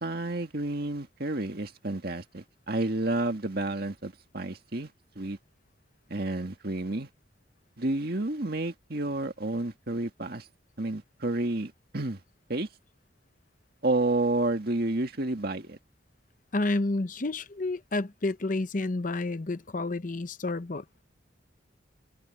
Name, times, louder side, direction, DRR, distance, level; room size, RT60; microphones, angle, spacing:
voice 1, 0.0-4.9 5.2-5.4 6.1-7.1 7.8-10.5 10.8-12.2 12.5-12.7 13.8-15.8, right 2 dB, 50° right, 1.9 m, -30 dB
voice 2, 16.5-21.0, left 2 dB, 45° left, 0.8 m, -30 dB
head